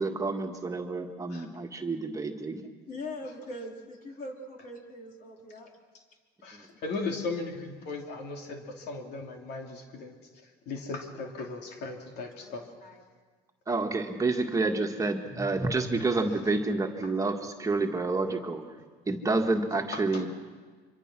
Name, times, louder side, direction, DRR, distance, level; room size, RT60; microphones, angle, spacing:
voice 1, 0.0-2.6 6.5-6.7 13.7-18.7 19.1-20.3, right 3 dB, 20° right, 3 dB, 1.8 m, -29 dB
voice 2, 2.9-5.7 6.6-6.7 12.4-13.0, left 1 dB, 55° left, 1 dB, 4.1 m, -42 dB
voice 3, 6.4-10.1 10.7-12.7 19.9-20.3, left 3 dB, 80° left, 2 dB, 2.9 m, -37 dB
24.5 x 24.5 x 6.2 m, 1.5 s
cardioid pair, 110°, 17 cm